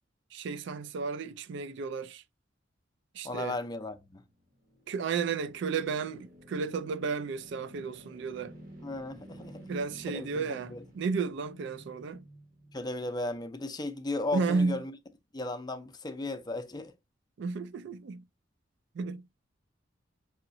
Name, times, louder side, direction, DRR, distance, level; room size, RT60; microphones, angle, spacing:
voice 1, 0.3-2.2 3.1-3.6 4.9-8.6 9.7-12.2 14.3-14.8 17.4-18.2 18.9-19.2, right 5 dB, 65° right, 0.4 m, -33 dB
voice 2, 3.2-4.2 8.8-9.7 10.1-10.8 12.7-14.9 15.3-16.9, left 2 dB, 20° left, 0.5 m, -36 dB
sound 1, 4.2-13.5, right 1 dB, 45° right, 1.3 m, -53 dB
5.5 x 2.9 x 2.5 m
head